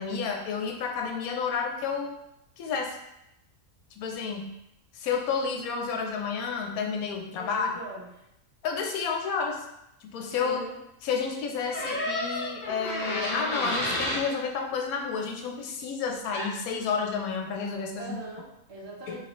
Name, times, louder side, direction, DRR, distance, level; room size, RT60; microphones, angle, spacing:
voice 1, 0.0-2.1 2.6-3.0 4.0-4.5 4.9-7.7 8.6-9.6 10.1-10.6 11.0-18.2 19.1-19.2, left 5 dB, 85° left, 3 dB, 1.0 m, -30 dB
voice 2, 7.4-8.2 10.4-10.8 18.0-19.2, right 2 dB, 55° right, -3 dB, 0.8 m, -41 dB
sound 1, 11.7-14.2 16.3-16.5, left 1 dB, 40° left, 0.8 m, -30 dB
3.1 x 2.8 x 2.9 m, 0.83 s
omnidirectional pair, 1.5 m